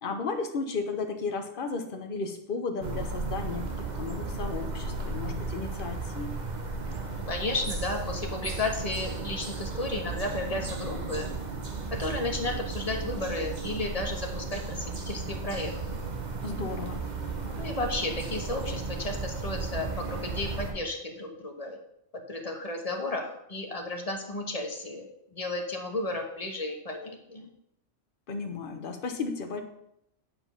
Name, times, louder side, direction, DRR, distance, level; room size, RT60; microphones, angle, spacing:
voice 1, 0.0-6.4 16.4-17.0 28.3-29.6, left 4 dB, 45° left, 5 dB, 1.1 m, -34 dB
sound 1, 2.8-20.7, right 3 dB, 35° right, 1.1 m, -35 dB
voice 2, 7.3-11.3 12.0-16.0 17.5-21.8 22.3-25.1 25.3-27.5, left 2 dB, 30° left, 2 dB, 1.3 m, -33 dB
8.7 x 5.4 x 5.5 m, 0.77 s
omnidirectional pair, 1.3 m